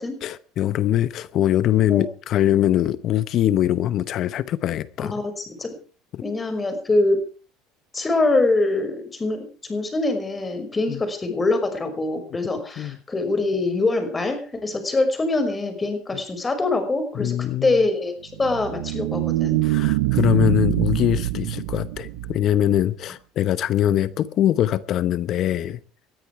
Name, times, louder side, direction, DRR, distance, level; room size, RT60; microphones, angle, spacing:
voice 1, 0.2-5.1 6.1-6.2 10.9-11.0 12.8-13.0 17.1-17.8 19.6-25.8, left 12 dB, 50° left, 1.0 m, -22 dB
voice 2, 5.0-5.7 6.2-7.2 7.9-17.4 17.6-19.6, left 2 dB, 20° left, 5.6 m, -24 dB
sound 1, 18.3-22.8, right 16 dB, 90° right, 1.2 m, -24 dB
20.5 x 13.5 x 4.7 m
supercardioid pair, 115°, 0 cm